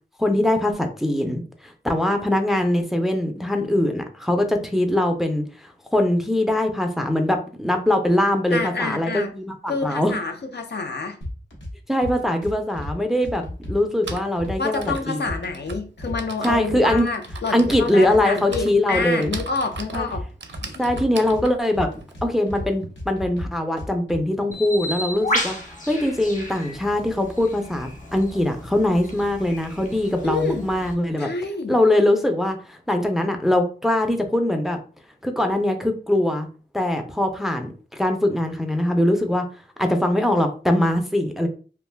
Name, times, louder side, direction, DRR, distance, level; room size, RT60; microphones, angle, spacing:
voice 1, 0.2-10.1 11.9-13.4 13.7-15.2 16.4-17.1 17.5-19.3 19.9-20.1 20.8-21.9 22.2-25.6 25.9-31.3 31.7-34.8 35.2-36.5 36.7-39.4 39.8-41.5, left 1 dB, ahead, 4 dB, 0.5 m, -22 dB
voice 2, 8.5-9.3 9.7-11.2 14.6-20.2 20.6-20.8 30.2-30.7 31.2-31.8, left 3 dB, 60° left, 5 dB, 0.5 m, -28 dB
sound 1, 11.2-11.7 12.0-12.9 13.2-15.0 15.3-16.2 16.5-18.2 18.5-19.4 19.7-21.4 21.7-22.7 23.0-24.2, left 1 dB, 80° left, 1.0 m, -33 dB
Typing, 12.7-12.8 13.8-22.9, right 4 dB, 70° right, 0.5 m, -40 dB
Bird, 24.5-30.9, left 1 dB, 40° left, 0.9 m, -32 dB
2.5 x 2.2 x 3.2 m, 0.39 s
wide cardioid pair, 60°, 19 cm